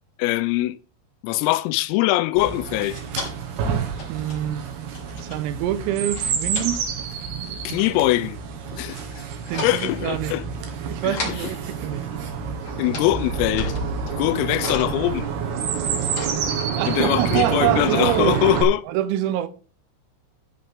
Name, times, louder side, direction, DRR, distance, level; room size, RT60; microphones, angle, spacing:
voice 1, 0.2-0.8 1.2-3.0 7.6-8.4 8.7-9.2 9.6-10.4 11.0-11.2 12.8-13.8 14.1-15.3 16.9-18.8, left 17 dB, 85° left, 3.3 m, -22 dB
Chirp tweet, 2.4-18.6, right 7 dB, 60° right, 3.4 m, -28 dB
sound 1, 3.0-3.4 4.0-4.6 5.0-5.4 6.1-7.1 9.0-9.2 9.5-9.9 11.1-11.5 12.4-12.5 12.7-13.1 13.4-17.0, left 2 dB, 30° left, 3.6 m, -34 dB
voice 2, 4.1-4.7 5.2-6.8 9.5-10.4 10.9-12.1 16.8-18.4 18.9-19.5, right 12 dB, 90° right, 3.7 m, -25 dB
14.0 x 5.4 x 5.5 m
omnidirectional pair, 6.0 m